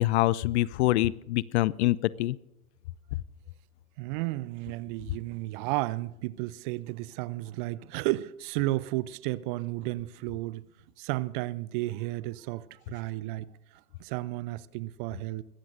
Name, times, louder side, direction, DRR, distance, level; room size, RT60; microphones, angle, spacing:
voice 1, 0.0-2.4, left 17 dB, 50° left, 0.5 m, -25 dB
voice 2, 4.0-10.6 11.0-13.5 14.0-15.4, right 18 dB, 35° right, 0.4 m, -33 dB
21.0 x 16.0 x 2.6 m
figure-of-eight pair, 90°, 44 cm